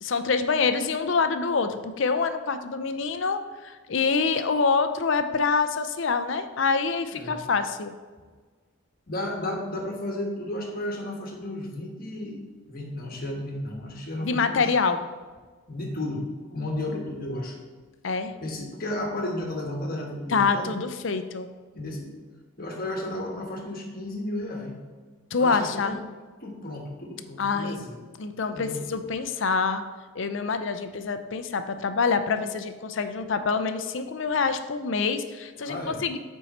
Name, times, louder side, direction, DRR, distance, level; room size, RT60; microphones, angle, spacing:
voice 1, 0.0-7.9 14.2-15.1 18.0-18.3 20.3-21.5 25.3-26.0 27.4-27.8 28.2-29.8 30.2-36.2, left 5 dB, 60° left, 9 dB, 0.5 m, -26 dB
voice 2, 9.1-12.4 12.7-14.7 15.7-16.2 16.5-17.6 18.4-20.7 21.7-22.1 22.6-24.8 25.4-26.0 26.4-28.0 28.5-28.8 35.6-36.0, left 1 dB, 45° left, 1 dB, 1.2 m, -33 dB
8.6 x 4.6 x 4.2 m, 1.4 s
head